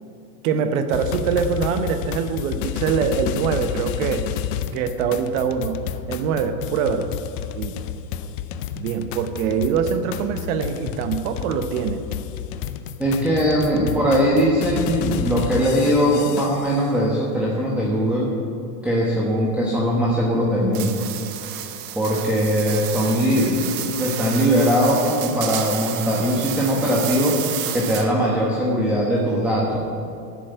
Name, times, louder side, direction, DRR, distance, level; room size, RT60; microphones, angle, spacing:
voice 1, 0.4-4.3 4.7-7.1 7.5-7.7 8.7-12.0, right 6 dB, 55° right, 9 dB, 1.0 m, -24 dB
sound 1, 0.9-16.8, left 9 dB, 45° left, 0.6 m, -31 dB
voice 2, 13.0-18.3 18.8-21.1 21.9-29.8, equal, 5° right, -5 dB, 1.2 m, -20 dB
sound 2, 20.7-28.3, right 11 dB, 25° right, 0.4 m, -31 dB
11.0 x 7.3 x 8.1 m, 2.6 s
supercardioid pair, 145°, 48 cm